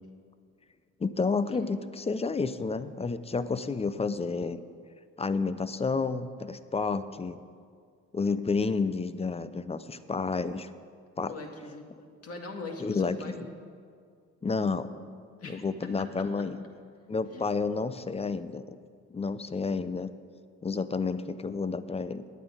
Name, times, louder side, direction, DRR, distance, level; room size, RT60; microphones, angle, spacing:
voice 1, 1.0-4.6 5.2-7.4 8.1-10.7 11.2-11.3 12.8-13.5 14.4-14.9 15.4-16.6 17.1-18.8 19.1-20.1 20.6-22.2, left 4 dB, 20° left, 13 dB, 0.6 m, -30 dB
voice 2, 11.3-11.9 12.2-13.5 15.4-15.6 17.3-17.5, left 3 dB, 50° left, 2 dB, 2.1 m, -41 dB
9.2 x 9.0 x 9.6 m, 2.1 s
cardioid pair, 90°, 30 cm